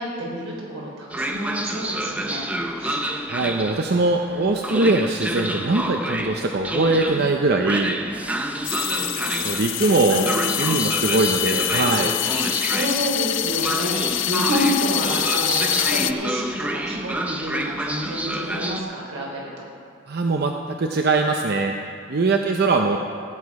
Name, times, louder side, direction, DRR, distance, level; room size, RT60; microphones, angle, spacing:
voice 1, 0.0-2.5 2.8-3.0 8.8-9.5 9.9-10.4 12.7-14.0 14.2-19.7, equal, 90° right, -3 dB, 3.7 m, -29 dB
Train, 1.1-18.8, right 1 dB, 5° right, 0.5 m, -28 dB
voice 2, 3.3-8.0 9.4-10.2 10.6-12.1 20.1-20.5 20.8-21.7 22.1-23.0, right 3 dB, 50° right, 3 dB, 0.6 m, -21 dB
sound 1, 8.6-16.1, left 14 dB, 65° left, 0.4 m, -25 dB
sound 2, 9.7-16.8, left 3 dB, 45° left, 2.1 m, -43 dB
15.5 x 8.8 x 4.8 m, 2.4 s
head